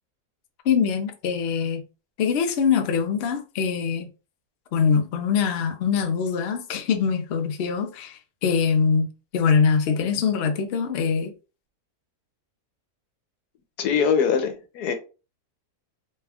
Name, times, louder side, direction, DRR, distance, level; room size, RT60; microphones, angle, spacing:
voice 1, 0.6-1.8 2.2-4.1 4.7-9.1 9.3-11.3, left 6 dB, 60° left, 0.7 m, -23 dB
voice 2, 13.8-14.9, left 6 dB, 85° left, 1.2 m, -22 dB
3.3 x 2.3 x 3.4 m
omnidirectional pair, 1.7 m